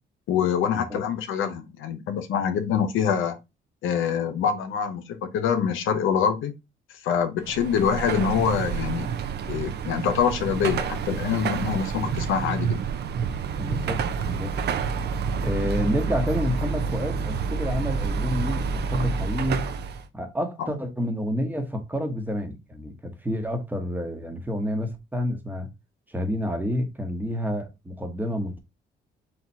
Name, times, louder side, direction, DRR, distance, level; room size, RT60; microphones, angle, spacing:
voice 1, 0.3-3.4 3.8-6.5 7.0-9.1 9.5-12.8 20.6-20.7, left 7 dB, 80° left, 0.7 m, -25 dB
Car passing by / Traffic noise roadway noise / Engine, 7.4-20.1, right 5 dB, 55° right, 0.6 m, -28 dB
voice 2, 13.6-14.6 15.4-19.6 20.1-25.7 26.1-28.6, equal, 10° right, 1.0 m, -29 dB
4.4 x 2.3 x 4.1 m
cardioid pair, 90°, 20 cm